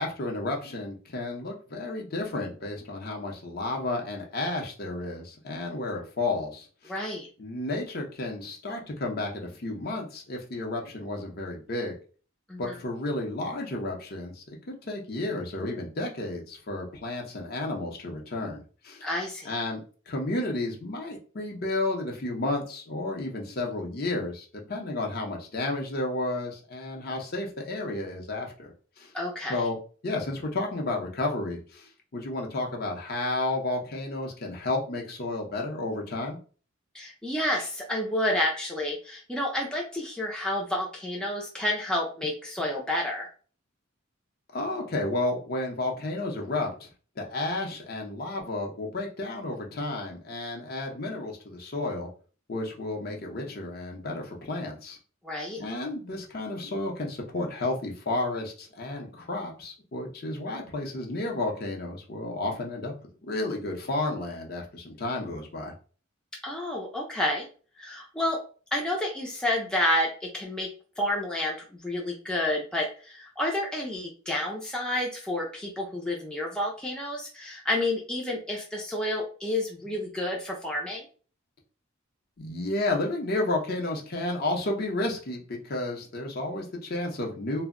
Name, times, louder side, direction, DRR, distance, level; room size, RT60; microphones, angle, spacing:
voice 1, 0.0-6.9 7.4-12.0 12.6-19.1 19.4-29.1 29.5-29.8 30.0-36.4 44.5-46.9 47.2-52.1 52.5-55.0 55.6-62.9 63.2-65.7 82.4-87.6, left 2 dB, 45° left, 0 dB, 0.7 m, -32 dB
voice 2, 6.9-7.3 12.5-12.7 19.0-19.6 29.1-29.6 36.9-43.3 55.2-55.6 66.4-67.5 67.8-68.4 68.7-70.7 71.0-71.6 71.8-81.0, left 1 dB, 5° left, -2 dB, 0.4 m, -30 dB
2.1 x 2.1 x 3.6 m, 0.39 s
head